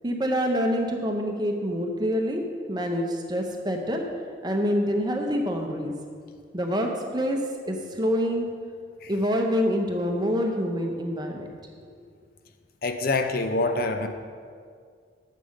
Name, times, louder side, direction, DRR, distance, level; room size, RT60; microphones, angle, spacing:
voice 1, 0.0-2.4 2.7-4.0 4.4-5.9 6.5-7.4 7.7-8.5 9.1-11.5, equal, 20° right, 3 dB, 0.7 m, -26 dB
voice 2, 12.8-14.1, left 2 dB, 50° left, 7 dB, 0.5 m, -25 dB
8.4 x 5.4 x 6.4 m, 2.1 s
head